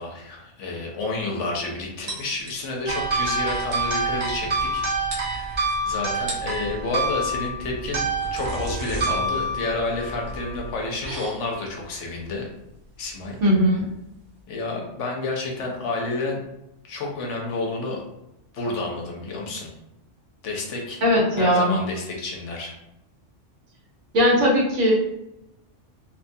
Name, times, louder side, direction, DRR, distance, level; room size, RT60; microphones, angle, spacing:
voice 1, 0.0-12.5 13.0-13.4 14.5-16.4 16.9-18.0 18.5-19.7 20.4-21.0 21.4-22.7, left 3 dB, 75° left, 0 dB, 1.0 m, -30 dB
sound 1, 2.1-3.0 3.3-3.4 3.6-3.9 4.8-4.9 5.1-5.8 6.1-6.6 7.8-14.4, right 2 dB, 55° right, 0.9 m, -38 dB
sound 2, 2.9-10.8, right 2 dB, 35° right, 0.5 m, -27 dB
voice 2, 13.4-13.9 21.0-21.8 24.1-24.9, equal, 70° right, -4 dB, 1.2 m, -19 dB
2.8 x 2.3 x 2.6 m, 0.87 s
omnidirectional pair, 1.3 m